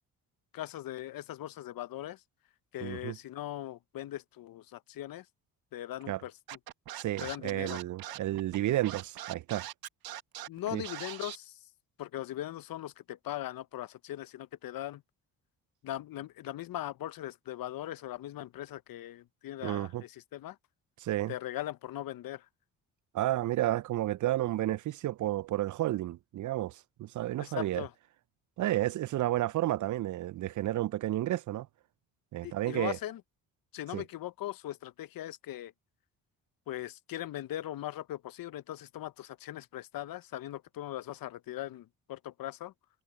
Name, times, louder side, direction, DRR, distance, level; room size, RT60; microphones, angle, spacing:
voice 1, 0.5-2.2 2.7-5.3 5.7-6.3 7.2-7.8 10.5-11.6 12.0-15.0 15.8-20.6 21.3-22.5 27.4-27.9 32.4-33.2 33.7-35.7 36.7-42.7, left 13 dB, 65° left, 0.9 m, -40 dB
voice 2, 2.8-3.2 6.1-6.2 7.0-9.7 10.7-10.8 19.6-20.0 21.0-21.3 23.1-27.8 28.6-31.7 32.3-33.0 33.9-34.0, right 14 dB, 55° right, 0.5 m, -31 dB
Scratching (performance technique), 6.5-11.4, right 13 dB, 70° right, 1.5 m, -42 dB
supercardioid pair, 55°, 37 cm